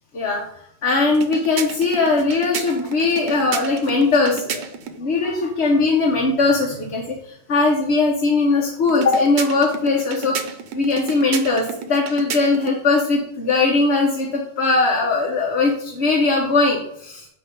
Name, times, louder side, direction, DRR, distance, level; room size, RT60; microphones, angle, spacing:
voice 1, 0.8-4.6 4.9-10.4 10.7-17.3, left 3 dB, 75° left, 0 dB, 1.2 m, -20 dB
sound 1, 1.1-5.0 8.9-12.8, right 6 dB, 80° right, 0.9 m, -32 dB
7.8 x 2.8 x 5.2 m, 0.72 s
omnidirectional pair, 1.1 m